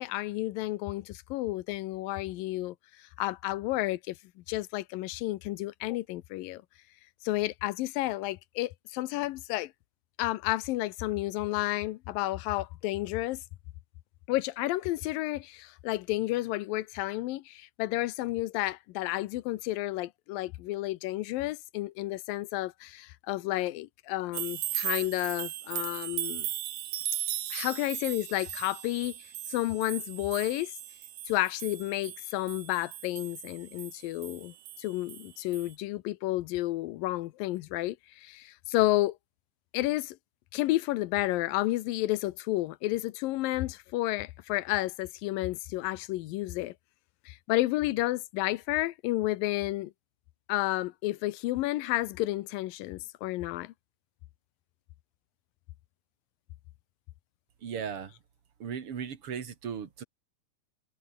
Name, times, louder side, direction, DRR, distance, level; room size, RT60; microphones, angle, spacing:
voice 1, 0.0-2.8 3.2-4.2 4.5-6.6 7.2-9.7 10.2-13.4 14.3-26.5 27.5-29.1 29.5-30.7 31.3-39.2 39.7-40.2 40.5-46.7 47.3-49.9 50.5-53.7, left 17 dB, 85° left, 2.5 m, -31 dB
sound 1, 24.3-35.3 35.5-35.7, right 12 dB, 60° right, 2.4 m, -37 dB
voice 2, 57.6-58.1 58.6-60.0, right 7 dB, 45° right, 2.7 m, -37 dB
omnidirectional pair, 4.0 m